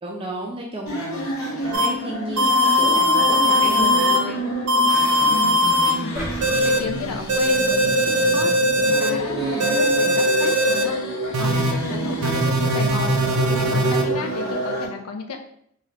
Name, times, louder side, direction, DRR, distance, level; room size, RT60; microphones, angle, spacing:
voice 1, 0.0-4.4 9.4-9.7 11.9-12.2, right 2 dB, 25° right, -2 dB, 0.4 m, -32 dB
sound 1, 0.9-14.9, right 1 dB, 70° left, 0.8 m, -28 dB
sound 2, 1.7-1.9 2.4-4.2 4.7-5.9 6.4-6.8 7.3-9.1 9.6-10.8 11.3-11.7 12.2-14.0, left 1 dB, 90° right, 0.4 m, -19 dB
voice 2, 5.3-15.4, left 4 dB, 85° left, 4 dB, 0.5 m, -33 dB
sound 3, 6.1-8.3 8.8-8.9, equal, 30° left, 1.4 m, -36 dB
3.2 x 2.3 x 2.8 m, 0.69 s
head